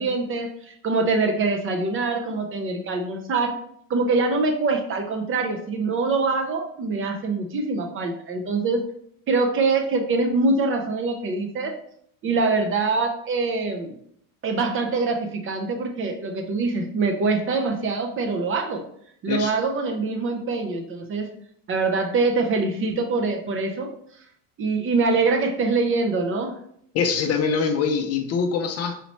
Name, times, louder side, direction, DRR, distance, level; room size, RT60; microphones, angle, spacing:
voice 1, 0.0-3.5 3.9-8.8 9.3-11.8 12.2-14.0 14.4-18.8 19.2-21.3 21.7-23.9 24.6-26.5, right 3 dB, 30° right, 4 dB, 0.5 m, -24 dB
voice 2, 19.3-19.6 26.9-29.0, left 5 dB, 35° left, 6 dB, 0.5 m, -24 dB
4.2 x 3.0 x 3.0 m, 0.67 s
supercardioid pair, 100°, 45 cm